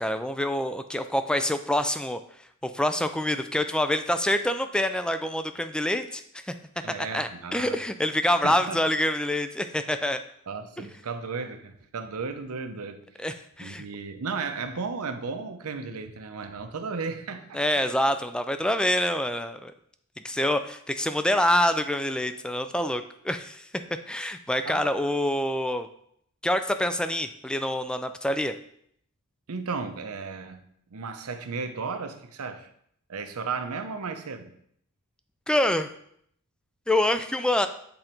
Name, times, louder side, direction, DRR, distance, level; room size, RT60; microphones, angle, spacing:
voice 1, 0.0-2.2 2.6-6.2 6.5-6.6 7.1-10.2 13.2-13.8 17.5-19.7 20.2-23.7 24.1-25.9 26.4-28.5 35.5-35.9 36.9-37.7, left 1 dB, 5° left, 9 dB, 0.3 m, -26 dB
voice 2, 6.8-7.8 8.4-8.8 10.5-13.3 13.6-17.6 24.6-25.0 29.5-30.6 30.9-32.7 33.1-34.5, right 4 dB, 80° right, 8 dB, 0.7 m, -34 dB
7.8 x 3.9 x 4.4 m, 0.68 s
head